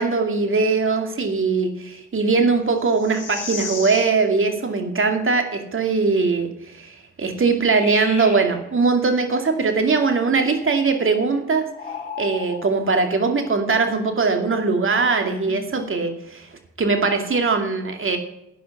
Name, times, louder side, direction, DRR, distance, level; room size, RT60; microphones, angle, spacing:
voice 1, 0.0-6.5 6.8-6.9 7.2-11.6 12.2-16.5 16.8-18.2, right 4 dB, 40° right, 5 dB, 2.5 m, -21 dB
sound 1, 2.8-4.2 7.5-8.5 11.7-12.9 15.4-15.8, left 5 dB, 90° left, 1.3 m, -34 dB
11.0 x 9.3 x 5.9 m, 0.87 s
figure-of-eight pair, 40°, 33 cm